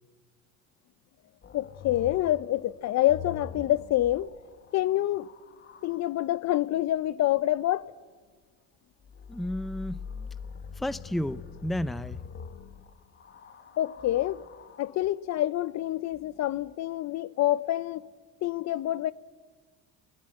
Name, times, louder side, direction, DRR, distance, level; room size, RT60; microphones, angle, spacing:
sound 1, 1.4-6.0 9.0-15.1 16.1-16.7, left 6 dB, 35° left, 1.3 m, -44 dB
voice 1, 1.5-4.3 4.7-5.3 5.8-7.8 13.8-14.4 14.8-18.1 18.4-19.1, left 14 dB, 50° left, 0.7 m, -27 dB
voice 2, 9.3-10.0 10.8-12.2, equal, ahead, 0.6 m, -32 dB
29.0 x 18.5 x 7.9 m
supercardioid pair, 100°, 35 cm